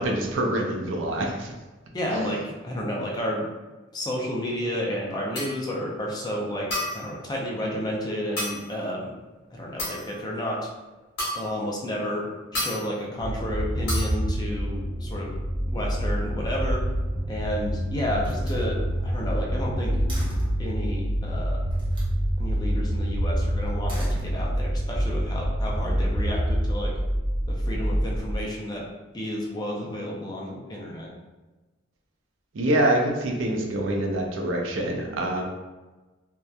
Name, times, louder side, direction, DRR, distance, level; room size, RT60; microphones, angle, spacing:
voice 1, 0.0-1.5 2.1-2.3 32.5-35.4, right 1 dB, 75° right, 1 dB, 0.4 m, -25 dB
voice 2, 1.9-3.5 3.9-9.1 9.5-10.6 11.3-12.3 12.5-15.3 15.7-16.8 17.3-20.0 20.6-21.7 22.4-26.9 27.5-28.8 29.1-31.1, equal, 20° left, -3 dB, 0.4 m, -31 dB
sound 1, 5.4-5.6 6.7-7.1 8.4-8.7 9.8-10.2 11.2-11.6 12.5-12.8 13.9-14.2, left 1 dB, 60° left, 1.0 m, -30 dB
sound 2, 13.2-28.4, equal, 5° right, 1.0 m, -27 dB
Slam, 17.1-17.7 18.2-20.7 21.7-22.2 23.7-24.8, right 1 dB, 25° right, 0.8 m, -43 dB
2.7 x 2.2 x 2.3 m, 1.2 s
head